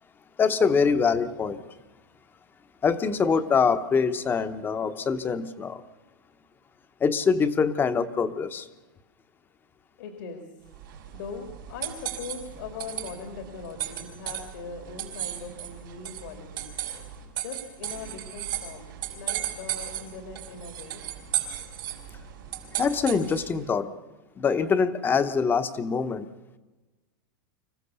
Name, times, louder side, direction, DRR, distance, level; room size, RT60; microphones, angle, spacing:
voice 1, 0.4-1.6 2.8-5.8 7.0-8.7 22.8-23.9 24.4-26.3, left 5 dB, 20° left, 0.9 m, -24 dB
voice 2, 10.0-10.5 11.1-16.7 17.4-21.0, left 5 dB, 75° left, 2.5 m, -40 dB
sound 1, 10.7-23.6, right 11 dB, 80° right, 4.9 m, -36 dB
26.0 x 15.0 x 6.9 m
supercardioid pair, 145°, 11 cm